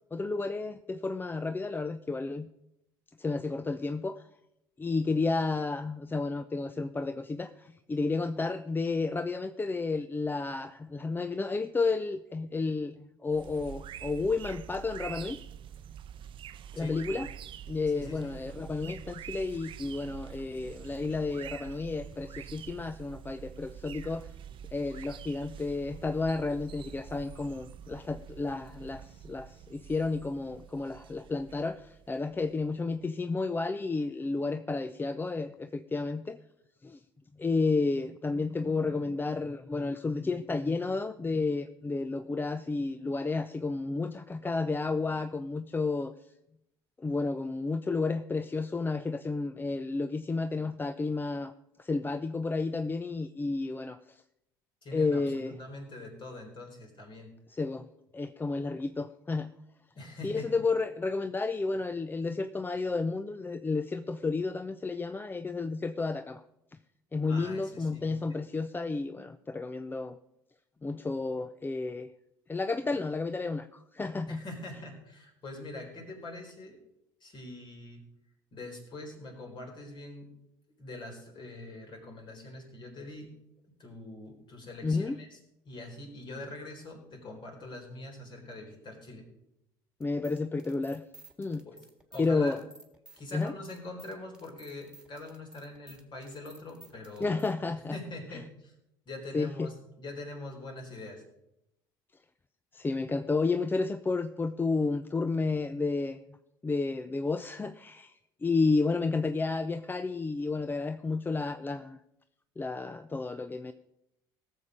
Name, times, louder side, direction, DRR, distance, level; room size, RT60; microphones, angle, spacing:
voice 1, 0.1-2.5 3.2-4.3 4.8-15.4 16.7-17.3 17.7-24.3 24.7-36.4 36.8-37.0 37.4-46.1 47.0-51.5 51.8-54.2 54.9-55.6 57.5-57.9 58.1-59.5 60.2-66.4 66.7-66.8 67.1-70.2 70.8-72.1 72.5-74.4 84.8-85.2 90.0-91.0 91.4-91.7 92.2-92.6 93.3-93.5 97.2-98.0 98.3-98.4 99.3-99.7 102.7-106.2 106.6-112.0 112.6-113.7, left 3 dB, 20° left, 11 dB, 0.5 m, -31 dB
sound 1, 13.3-32.7, right 9 dB, 50° right, 0.7 m, -46 dB
voice 2, 17.9-18.3 54.8-57.3 59.9-60.6 67.3-68.4 74.3-76.8 77.2-78.0 78.5-80.3 80.8-83.3 83.8-85.4 85.6-89.2 91.6-91.8 92.1-92.6 93.2-97.4 97.7-98.7 99.1-101.2, left 2 dB, 45° left, 2 dB, 4.0 m, -44 dB
sound 2, 90.0-97.5, right 2 dB, 10° right, 2.1 m, -54 dB
17.5 x 7.3 x 5.0 m, 0.82 s
hypercardioid pair, 70°, 11 cm